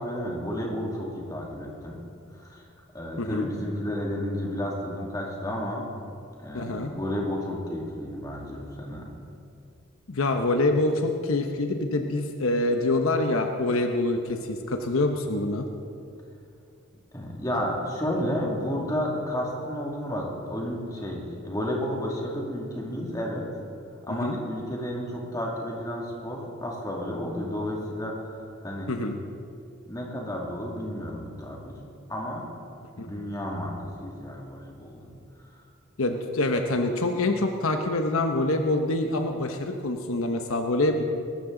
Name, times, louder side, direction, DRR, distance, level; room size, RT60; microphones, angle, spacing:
voice 1, 0.0-2.0 2.3-2.6 2.9-5.9 6.4-9.0 17.1-23.5 24.0-28.3 28.6-28.9 29.9-31.8 32.1-32.5 33.0-33.7 34.0-35.1 35.5-35.6, equal, 15° left, -2 dB, 2.4 m, -32 dB
voice 2, 3.2-3.5 6.5-6.9 10.1-15.7 24.2-24.4 28.9-29.2 33.0-33.1 36.0-41.0, left 2 dB, 80° left, 5 dB, 1.0 m, -25 dB
21.5 x 13.0 x 3.9 m, 2.5 s
head